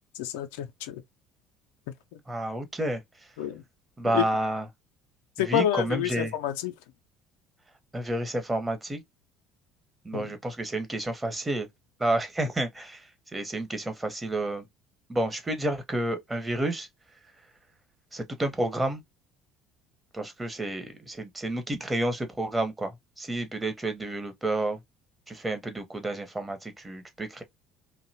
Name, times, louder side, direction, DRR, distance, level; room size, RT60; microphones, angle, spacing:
voice 1, 0.2-1.0 2.1-2.2 3.4-3.6 4.0-4.3 5.4-6.7 10.1-10.3, left 10 dB, 70° left, 0.3 m, -29 dB
voice 2, 2.3-3.0 4.0-4.7 5.4-6.3 7.9-9.0 10.0-11.7 12.0-14.6 15.1-16.9 18.1-19.0 20.1-24.8 25.3-27.4, right 1 dB, 15° right, 0.8 m, -30 dB
2.6 x 2.0 x 2.7 m
figure-of-eight pair, 60°, 0 cm